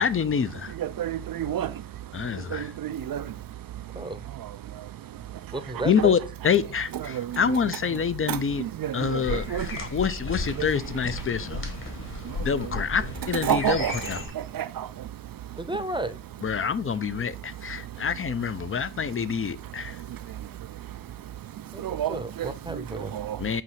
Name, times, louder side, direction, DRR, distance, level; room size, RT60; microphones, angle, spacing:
voice 1, 0.0-0.7 2.1-2.7 5.8-8.6 8.9-9.5 9.8-11.6 12.4-14.2 16.4-20.0 23.4-23.6, left 6 dB, 30° left, 0.5 m, -26 dB
voice 2, 0.8-1.7 2.5-3.2 6.0-6.1 7.0-7.3 8.3-9.7 13.4-13.9 14.5-14.9 21.8-22.5 23.1-23.4, right 11 dB, 50° right, 0.5 m, -29 dB
voice 3, 5.5-6.1 15.6-16.2 21.7-23.2, right 2 dB, 10° right, 0.7 m, -33 dB
sound 1, 9.2-14.3, left 3 dB, 50° left, 2.2 m, -35 dB
7.6 x 2.7 x 5.7 m
cardioid pair, 70°, 44 cm